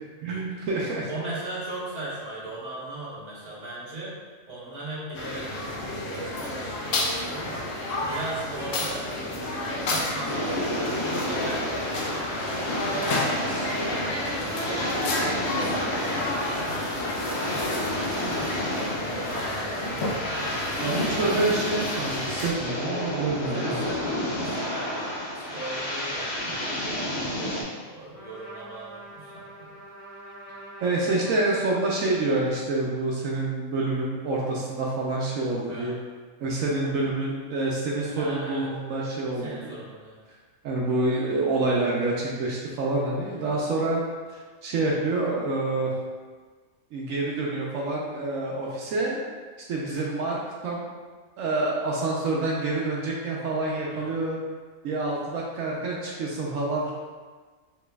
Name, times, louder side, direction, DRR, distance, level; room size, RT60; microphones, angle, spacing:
voice 1, 0.2-1.1 20.8-23.8 30.8-36.0 36.4-39.7 40.6-44.0 44.3-45.9 46.9-49.2 49.7-50.8 51.4-54.4 54.8-56.9, right 2 dB, 80° right, -3 dB, 1.0 m, -27 dB
voice 2, 1.1-4.2 4.5-9.1 9.8-10.6 11.0-11.7 12.0-18.5 19.0-21.1 23.5-29.7 35.7-36.0 36.8-36.9 38.2-38.7 39.4-40.2 41.1-41.3 53.9-54.2, right 2 dB, 35° right, -8 dB, 1.2 m, -39 dB
sound 1, 5.1-22.5, left 1 dB, 75° left, 1.0 m, -31 dB
sound 2, 10.3-27.6, left 1 dB, 55° left, 1.2 m, -31 dB
Trumpet, 28.1-32.7, right 1 dB, 15° left, 1.1 m, -45 dB
5.0 x 3.3 x 2.3 m, 1.5 s
omnidirectional pair, 1.4 m